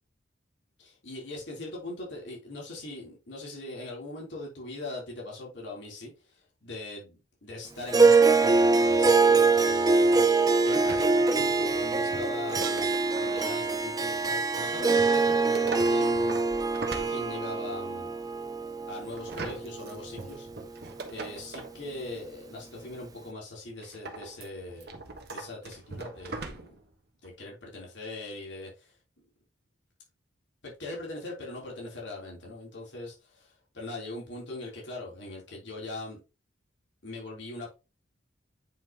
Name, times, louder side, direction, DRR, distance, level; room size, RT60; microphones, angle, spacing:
voice 1, 0.8-12.9 13.2-16.4 16.9-18.1 18.9-20.5 21.1-24.9 25.3-26.8 27.2-29.0 30.6-36.2 37.0-37.7, left 2 dB, 65° left, 3.5 m, -41 dB
Harp, 7.9-20.4, right 3 dB, 20° right, 0.5 m, -24 dB
sound 1, 10.7-13.4 15.0-17.7 19.1-21.8 23.8-26.9 27.2-27.3, right 3 dB, 55° right, 1.4 m, -41 dB
9.2 x 5.6 x 3.0 m
head